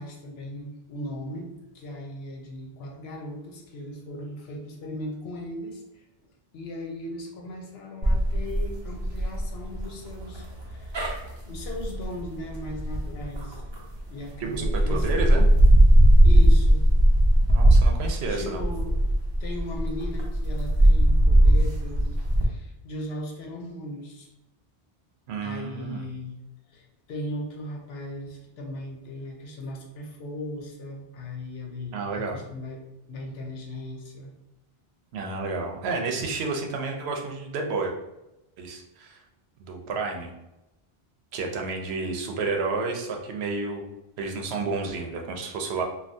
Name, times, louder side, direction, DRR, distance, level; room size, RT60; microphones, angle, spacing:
voice 1, 0.0-6.0 6.5-11.0 11.4-13.6 14.1-15.1 16.2-16.8 18.3-19.0 19.4-24.3 25.4-26.4 26.7-34.3, left 1 dB, 80° left, 1 dB, 0.9 m, -38 dB
sound 1, 8.0-14.0 14.5-22.4, right 1 dB, 35° right, 0.5 m, -19 dB
voice 2, 14.4-15.5 17.5-18.6 25.3-26.1 31.9-32.4 35.1-37.9 38.6-39.2 39.6-40.3 41.3-43.8 44.2-45.8, right 4 dB, 85° right, 2 dB, 0.8 m, -30 dB
3.3 x 2.3 x 2.6 m, 0.94 s
omnidirectional pair, 1.0 m